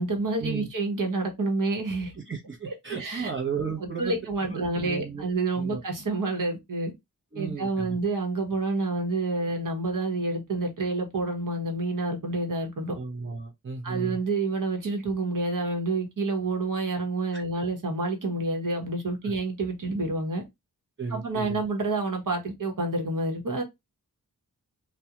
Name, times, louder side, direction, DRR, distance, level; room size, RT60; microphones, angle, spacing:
voice 1, 0.0-2.1 2.7-3.3 3.8-6.9 7.3-13.0 13.8-20.4 21.1-23.6, right 2 dB, 60° right, 1.0 m, -28 dB
voice 2, 2.1-5.2 5.5-5.8 7.3-8.0 12.9-14.2 17.3-17.4 19.2-19.3 21.0-21.6, right 5 dB, 35° right, 0.8 m, -34 dB
2.3 x 2.2 x 2.8 m
wide cardioid pair, 60°, 36 cm